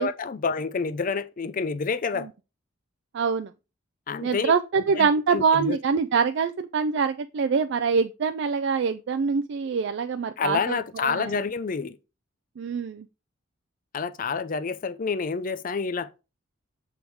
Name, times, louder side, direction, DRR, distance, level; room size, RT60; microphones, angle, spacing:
voice 1, 0.0-2.3 4.1-4.5 4.9-5.8 10.4-12.0 13.9-16.1, left 5 dB, 40° left, 0.5 m, -28 dB
voice 2, 3.1-3.5 4.2-10.8 11.0-11.3 12.6-13.0, right 5 dB, 55° right, 0.3 m, -24 dB
7.8 x 3.6 x 4.6 m
head